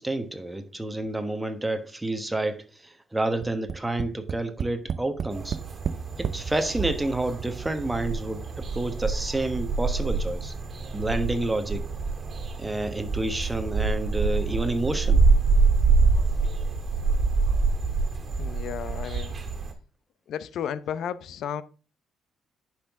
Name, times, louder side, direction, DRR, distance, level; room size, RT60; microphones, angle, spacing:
voice 1, 0.0-5.6 6.2-10.5 10.9-11.9 12.6-15.2, right 2 dB, 10° right, 1.3 m, -29 dB
Tap, 3.4-6.4 7.3-7.4 7.7-7.8, right 7 dB, 55° right, 0.5 m, -31 dB
sound 1, 5.3-19.7, right 4 dB, 40° right, 2.1 m, -26 dB
voice 2, 18.4-19.3 20.3-21.6, left 9 dB, 75° left, 0.6 m, -33 dB
10.0 x 5.9 x 3.7 m
cardioid pair, 90°, 0 cm